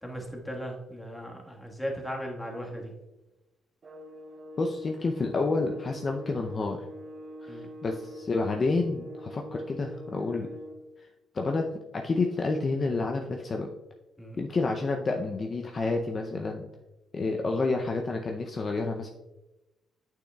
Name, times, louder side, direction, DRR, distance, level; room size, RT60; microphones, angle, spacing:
voice 1, 0.0-2.9 7.5-7.7 14.2-14.4, equal, 10° left, 0 dB, 1.5 m, -37 dB
sound 1, 3.8-10.9, equal, 40° right, 0.8 m, -44 dB
voice 2, 4.6-6.8 7.4-10.5 11.0-11.1 11.3-13.7 14.4-16.6 17.1-19.1, left 3 dB, 40° left, 2 dB, 0.6 m, -29 dB
8.4 x 6.4 x 2.3 m, 1.0 s
cardioid pair, 90°, 0 cm